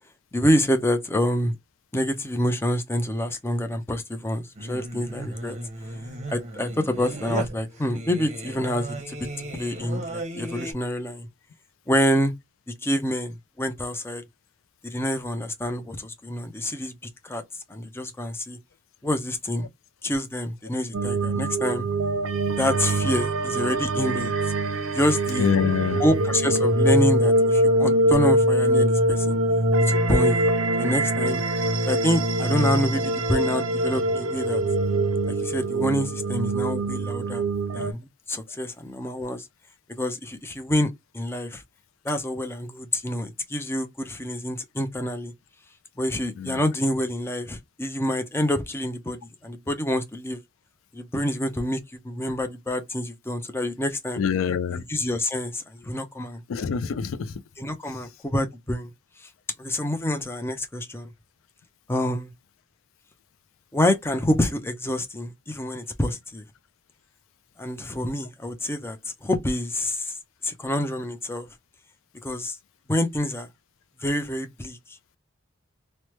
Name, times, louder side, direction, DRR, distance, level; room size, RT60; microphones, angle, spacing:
voice 1, 0.3-1.6 1.9-5.6 6.3-9.2 9.5-11.3 11.9-12.3 12.8-14.2 14.8-16.9 17.2-17.4 17.7-18.6 19.0-19.7 20.0-21.8 22.6-24.3 24.9-25.5 26.0-29.4 29.9-30.5 30.8-31.4 31.9-34.6 35.3-37.4 37.7-39.5 39.9-41.6 42.0-45.3 46.0-50.4 50.9-54.2 54.7-56.4 57.6-58.9 59.2-59.3 59.6-61.1 61.9-62.3 63.7-66.4 67.6-70.2 70.4-71.5 72.2-72.6 72.9-73.5 74.0-75.2, left 1 dB, 10° left, 0.4 m, -27 dB
Singing, 4.5-10.7, right 1 dB, 35° right, 0.8 m, -35 dB
sound 1, 20.9-37.9, right 1 dB, 75° right, 0.5 m, -23 dB
voice 2, 25.4-26.0 46.4-46.6 54.2-54.8 56.5-57.3, left 7 dB, 80° left, 0.4 m, -25 dB
3.1 x 2.1 x 2.9 m
head